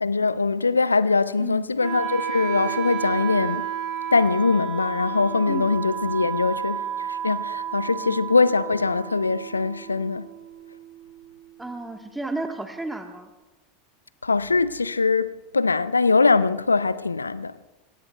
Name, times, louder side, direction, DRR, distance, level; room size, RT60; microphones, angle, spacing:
voice 1, 0.0-3.7 4.1-10.3 14.2-17.5, left 4 dB, 85° left, 0.6 m, -22 dB
Wind instrument woodwind instrument, 1.8-11.8, right 10 dB, 50° right, 2.5 m, -32 dB
voice 2, 11.6-13.3, right 2 dB, 5° right, 1.3 m, -33 dB
27.5 x 22.0 x 2.3 m
figure-of-eight pair, 85°, 0 cm